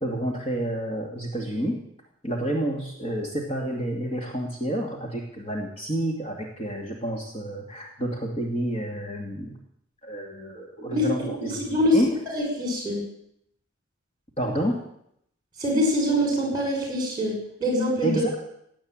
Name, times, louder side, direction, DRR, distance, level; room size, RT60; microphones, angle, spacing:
voice 1, 0.0-1.8 2.2-9.6 10.0-11.6 11.9-12.1 14.4-14.8 18.0-18.5, right 1 dB, 30° left, 0 dB, 2.4 m, -29 dB
voice 2, 11.4-12.0 12.3-13.0 15.6-18.2, left 1 dB, 20° right, 1 dB, 5.9 m, -24 dB
17.0 x 9.2 x 9.1 m, 0.73 s
head